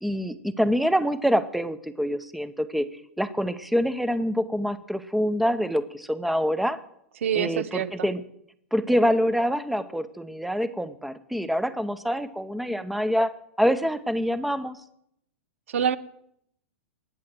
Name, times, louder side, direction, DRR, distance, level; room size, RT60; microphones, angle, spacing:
voice 1, 0.0-2.9 3.2-6.8 7.3-8.2 8.7-13.3 13.6-14.8, equal, ahead, 12 dB, 0.8 m, -25 dB
voice 2, 7.2-8.1 15.7-16.0, right 8 dB, 75° right, 15 dB, 0.9 m, -26 dB
20.0 x 7.6 x 7.6 m, 0.74 s
hypercardioid pair, 120°, 7 cm